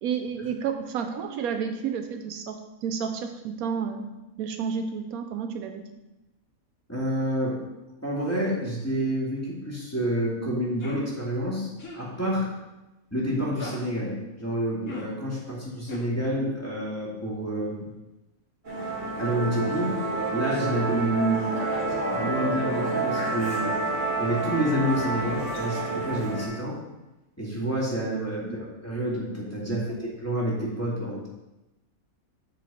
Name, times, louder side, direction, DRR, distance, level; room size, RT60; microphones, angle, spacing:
voice 1, 0.0-4.1 4.4-5.8 28.4-28.6 29.7-29.9, right 6 dB, 80° right, 7 dB, 1.1 m, -31 dB
voice 2, 6.9-7.6 8.0-12.5 13.1-17.9 19.2-20.0 20.3-21.5 22.0-23.8 24.2-26.8 27.4-31.3, right 1 dB, 10° left, -6 dB, 2.2 m, -28 dB
sound 1, 10.8-11.0 11.8-12.0 13.6-13.8 14.8-15.1 15.9-16.0, left 2 dB, 70° left, 2.3 m, -38 dB
Musical instrument, 18.6-26.5, right 2 dB, 35° right, 2.1 m, -29 dB
7.7 x 6.2 x 4.2 m, 1.0 s
omnidirectional pair, 1.5 m